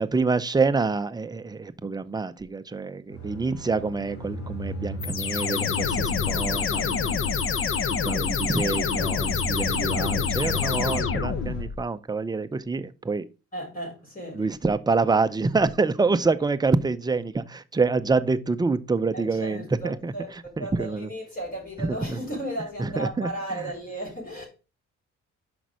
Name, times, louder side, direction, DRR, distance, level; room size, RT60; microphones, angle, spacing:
voice 1, 0.0-7.2 8.0-13.3 14.3-20.1 20.6-21.1 21.8-22.2 22.8-23.3 23.6-23.7, right 4 dB, 15° right, 0.5 m, -26 dB
sound 1, 3.1-11.6, left 2 dB, 65° left, 2.8 m, -35 dB
sound 2, 5.0-11.8, left 6 dB, 45° left, 0.9 m, -27 dB
voice 2, 13.5-14.4 19.1-24.5, right 1 dB, 30° left, 4.9 m, -35 dB
5.9 x 5.2 x 4.8 m
cardioid pair, 90°, 30 cm